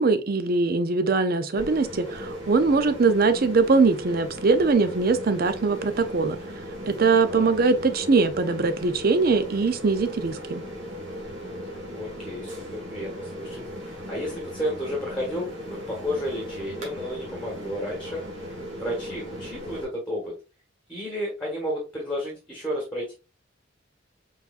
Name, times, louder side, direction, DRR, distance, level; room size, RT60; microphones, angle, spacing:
voice 1, 0.0-6.4 6.9-10.6, right 4 dB, 45° right, 0.5 m, -22 dB
sound 1, 1.5-19.8, equal, 65° right, 1.8 m, -37 dB
voice 2, 7.2-7.5 11.9-12.6 12.9-20.3 20.9-23.1, equal, 5° left, 1.3 m, -32 dB
4.7 x 4.1 x 2.4 m
head